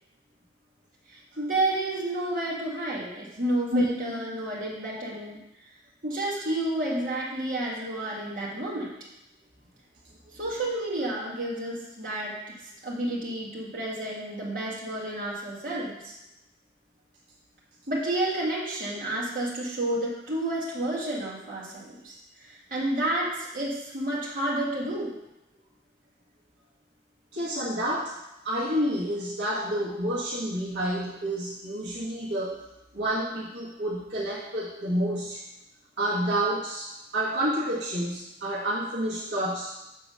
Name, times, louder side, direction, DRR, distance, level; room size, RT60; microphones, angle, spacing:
voice 1, 1.1-5.4 6.0-8.9 10.3-16.1 17.9-25.1, right 1 dB, 45° right, -6 dB, 2.0 m, -30 dB
voice 2, 27.3-28.1 28.4-32.6 32.9-35.4 36.0-39.7, equal, 70° right, -7 dB, 1.5 m, -29 dB
7.0 x 3.9 x 6.3 m, 0.90 s
head